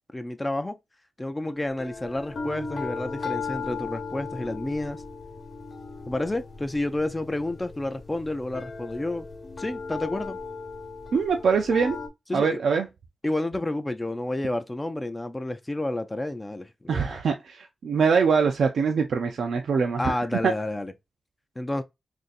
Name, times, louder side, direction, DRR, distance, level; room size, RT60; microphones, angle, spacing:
voice 1, 0.1-0.8 1.2-5.0 6.1-9.3 9.6-10.4 12.3-12.6 13.2-17.2 20.0-20.9 21.6-21.8, left 1 dB, 20° left, 0.3 m, -30 dB
sound 1, 1.7-12.1, left 4 dB, 75° left, 1.0 m, -37 dB
voice 2, 11.1-12.0 12.3-12.9 16.9-20.1 20.4-20.5, right 5 dB, 85° right, 0.4 m, -23 dB
2.6 x 2.5 x 3.8 m
cardioid pair, 75°, 0 cm